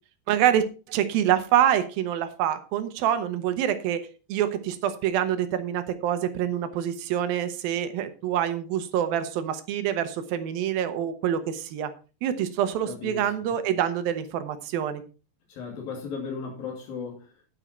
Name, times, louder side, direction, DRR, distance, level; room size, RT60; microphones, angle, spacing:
voice 1, 0.3-4.0 4.3-11.9 12.2-15.0, right 10 dB, 85° right, 10 dB, 3.0 m, -26 dB
voice 2, 12.9-13.6 15.5-17.3, left 5 dB, 80° left, 0 dB, 4.5 m, -36 dB
10.0 x 10.0 x 4.4 m, 0.34 s
omnidirectional pair, 4.1 m